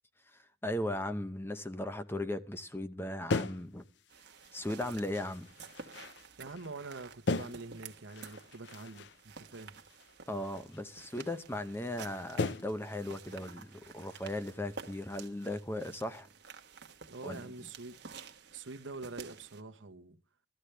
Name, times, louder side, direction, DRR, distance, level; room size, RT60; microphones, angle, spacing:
voice 1, 0.3-3.8 4.5-5.5 10.3-16.3 17.2-17.4, left 1 dB, 10° left, 0.7 m, -37 dB
sound 1, 3.3-4.7 5.1-6.9 7.3-9.2 9.5-10.8 11.2-11.3 11.8-11.9 12.4-12.9 13.3-13.7 14.1-14.6, left 3 dB, 60° left, 0.6 m, -39 dB
sound 2, 4.1-19.6, right 5 dB, 55° right, 1.3 m, -51 dB
voice 2, 6.4-9.8 17.1-18.0 18.5-20.2, right 3 dB, 75° right, 1.1 m, -45 dB
16.5 x 13.0 x 3.3 m
head